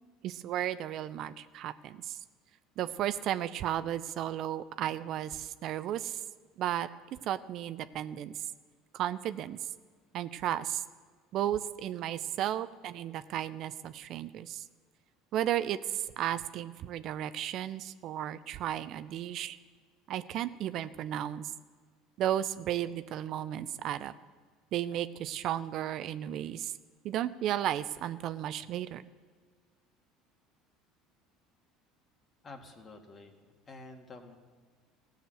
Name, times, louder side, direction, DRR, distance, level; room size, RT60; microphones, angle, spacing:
voice 1, 0.2-2.2 2.8-6.2 6.6-8.5 8.9-9.6 10.1-10.8 11.3-14.6 15.3-19.6 20.1-21.5 22.2-24.1 24.7-26.7 27.0-29.0, right 11 dB, 55° right, 13 dB, 0.4 m, -34 dB
voice 2, 32.4-34.4, left 3 dB, 35° left, 4 dB, 1.8 m, -49 dB
15.5 x 6.6 x 7.8 m, 1.5 s
hypercardioid pair, 80°, 0 cm